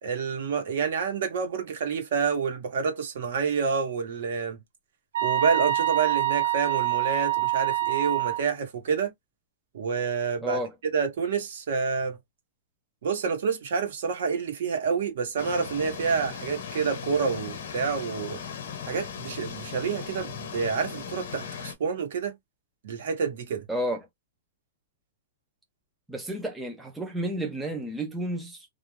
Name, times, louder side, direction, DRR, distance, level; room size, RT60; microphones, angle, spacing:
voice 1, 0.0-4.6 5.2-9.1 9.7-10.6 10.9-12.2 13.0-18.4 18.8-22.3 22.8-23.6, right 5 dB, 65° right, 1.0 m, -28 dB
sound 1, 5.1-8.4, right 14 dB, 85° right, 0.5 m, -25 dB
voice 2, 10.4-10.7 23.7-24.1 26.1-28.7, right 1 dB, 5° right, 0.4 m, -31 dB
sound 2, 15.4-21.7, left 7 dB, 65° left, 0.8 m, -38 dB
2.4 x 2.2 x 3.1 m
hypercardioid pair, 165°, 0 cm